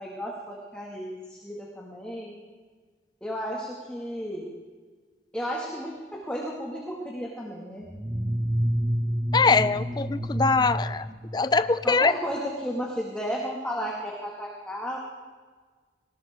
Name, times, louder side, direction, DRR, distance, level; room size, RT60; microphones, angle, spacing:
voice 1, 0.0-2.4 3.2-4.5 5.3-7.9 11.8-15.0, equal, 5° left, -3 dB, 2.1 m, -33 dB
sound 1, 7.9-12.0, equal, 15° right, 0.8 m, -29 dB
voice 2, 9.3-11.1 11.3-12.1, left 4 dB, 25° left, 14 dB, 0.4 m, -22 dB
19.5 x 18.5 x 3.7 m, 1.5 s
head